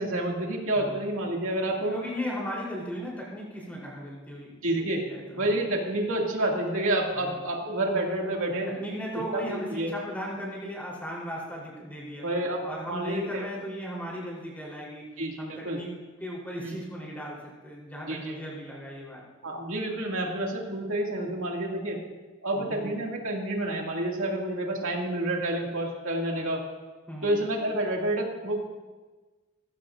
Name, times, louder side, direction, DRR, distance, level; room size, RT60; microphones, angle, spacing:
voice 1, 0.0-1.9 4.6-5.0 5.4-8.7 9.3-9.9 12.2-13.5 15.2-15.4 15.6-15.8 16.6-16.8 18.1-18.4 19.4-22.0 22.4-26.6 27.2-28.6, right 1 dB, 85° right, -1 dB, 2.3 m, -29 dB
voice 2, 1.8-5.6 7.2-7.4 8.6-12.3 12.6-15.9 16.2-19.2 22.5-22.9 27.1-27.4, equal, 10° left, -5 dB, 3.6 m, -37 dB
20.0 x 15.0 x 2.6 m, 1.3 s
head